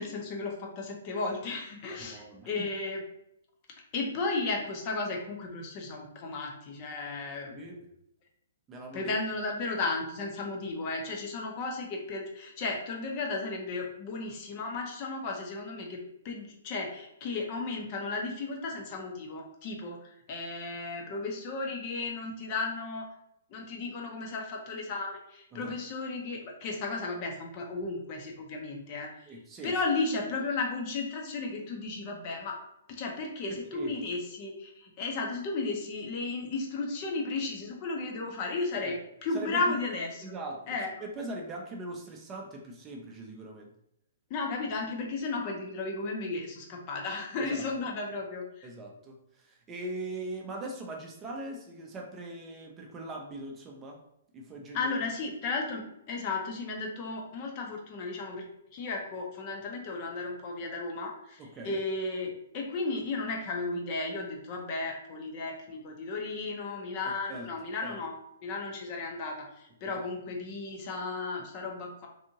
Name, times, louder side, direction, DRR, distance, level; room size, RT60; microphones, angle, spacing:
voice 1, 0.0-3.0 3.9-7.7 8.9-16.0 16.2-23.1 23.5-29.1 29.6-32.6 32.9-38.9 39.2-40.1 40.7-40.9 44.3-48.7 54.7-58.4 58.7-68.1 68.4-72.1, left 3 dB, 40° left, 0 dB, 0.6 m, -34 dB
voice 2, 1.9-2.5 7.5-7.9 8.7-9.1 25.5-25.7 29.3-29.7 33.5-33.9 38.7-38.9 39.3-39.6 40.2-40.6 41.0-43.7 47.4-47.6 48.6-54.0 54.3-55.0 61.4-61.8 67.0-67.5 67.8-67.9 69.8-70.0, right 2 dB, 20° right, 0 dB, 0.5 m, -41 dB
2.7 x 2.5 x 2.8 m, 0.79 s
figure-of-eight pair, 125°, 0 cm